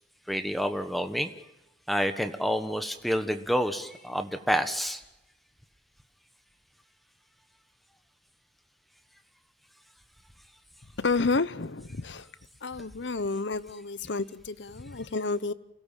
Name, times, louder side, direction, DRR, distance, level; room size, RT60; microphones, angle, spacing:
voice 1, 0.3-1.3 1.9-5.0, equal, ahead, 8 dB, 1.3 m, -28 dB
voice 2, 11.0-12.3 12.6-15.5, left 3 dB, 70° left, 16 dB, 0.9 m, -30 dB
28.0 x 17.0 x 7.5 m, 0.95 s
head